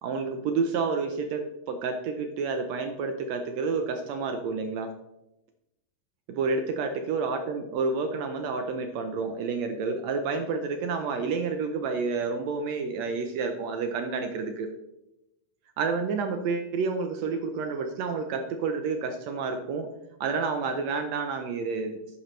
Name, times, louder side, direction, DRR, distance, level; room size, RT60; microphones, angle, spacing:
voice 1, 0.0-4.9 6.3-14.7 15.8-19.9 20.2-22.2, right 4 dB, 75° right, 6 dB, 1.6 m, -29 dB
12.0 x 8.8 x 3.2 m, 0.89 s
omnidirectional pair, 3.9 m